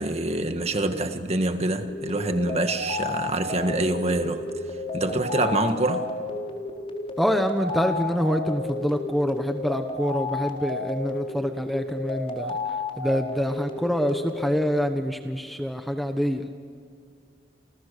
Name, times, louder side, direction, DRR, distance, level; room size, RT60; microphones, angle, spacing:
voice 1, 0.0-4.5 4.9-6.1, right 2 dB, 35° right, 1.7 m, -25 dB
sound 1, 1.9-14.5, left 3 dB, 30° left, 4.3 m, -32 dB
voice 2, 7.2-12.5 13.0-16.4, equal, ahead, 1.2 m, -26 dB
29.5 x 29.5 x 6.8 m
head